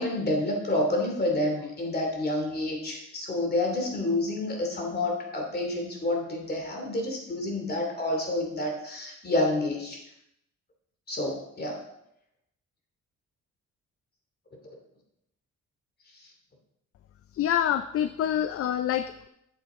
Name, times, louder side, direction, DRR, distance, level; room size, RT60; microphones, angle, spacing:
voice 1, 0.0-10.0 11.1-11.8, left 1 dB, 30° left, 1 dB, 2.8 m, -29 dB
voice 2, 17.3-19.3, left 10 dB, 50° left, 11 dB, 0.5 m, -26 dB
9.0 x 7.0 x 3.8 m, 0.80 s
cardioid pair, 90°, 30 cm